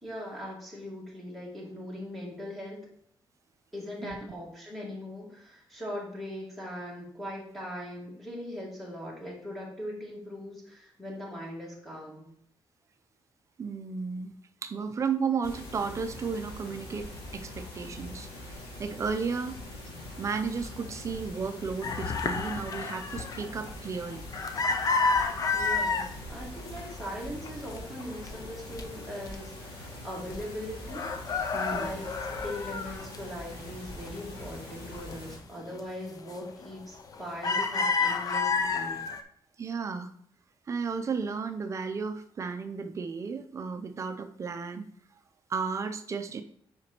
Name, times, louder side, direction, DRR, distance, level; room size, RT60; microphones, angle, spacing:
voice 1, 0.0-2.9 3.7-12.3 25.5-31.1 31.7-39.0, left 1 dB, ahead, -4 dB, 1.9 m, -40 dB
voice 2, 13.6-14.3 14.6-19.5 20.2-24.3 31.5-32.0 39.6-40.1 40.7-44.9 45.5-46.4, right 5 dB, 35° right, 8 dB, 0.5 m, -33 dB
sound 1, 15.4-35.4, left 1 dB, 85° left, 2.3 m, -43 dB
sound 2, 21.8-26.1 26.6-27.2 27.4-28.8 29.3-29.4 29.7-30.6 30.9-33.7 34.1-35.1 35.6-35.8 36.3-36.7 37.0-39.2, left 4 dB, 40° left, 0.5 m, -30 dB
7.6 x 5.1 x 3.0 m, 0.66 s
wide cardioid pair, 170°, 9 cm